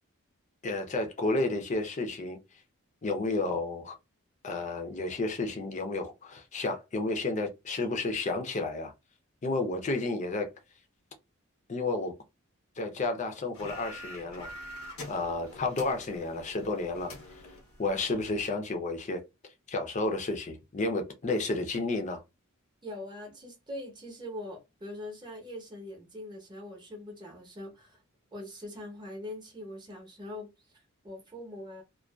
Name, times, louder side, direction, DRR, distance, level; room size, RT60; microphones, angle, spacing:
voice 1, 0.6-2.4 3.0-4.0 4.4-8.9 9.4-10.5 11.7-12.1 12.8-14.5 15.1-17.1 17.8-19.2 19.7-22.2, left 2 dB, 35° left, 0.5 m, -31 dB
sound 1, 13.5-18.5, left 1 dB, 85° left, 0.8 m, -46 dB
voice 2, 22.8-28.0 28.3-31.8, left 1 dB, 20° right, 0.8 m, -42 dB
2.5 x 2.2 x 2.2 m
head